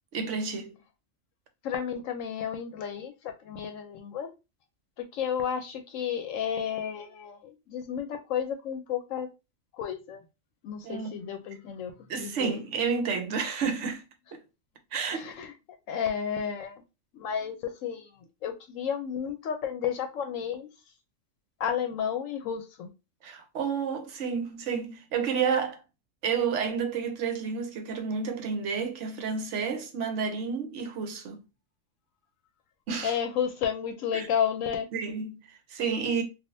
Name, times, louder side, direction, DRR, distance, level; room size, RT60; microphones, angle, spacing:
voice 1, 0.1-0.7 10.8-11.3 12.1-14.1 14.3-14.4 14.9-15.3 23.2-25.8 26.2-31.4 32.9-33.2 34.1-34.3 34.9-36.2, right 6 dB, 70° right, 1.0 m, -30 dB
voice 2, 1.6-4.3 5.0-9.3 9.7-10.2 10.6-11.9 12.2-12.6 15.1-15.5 15.9-16.8 17.1-18.1 18.4-20.7 21.6-22.9 33.0-34.9, left 8 dB, 80° left, 1.0 m, -32 dB
3.4 x 2.4 x 2.6 m
omnidirectional pair, 1.3 m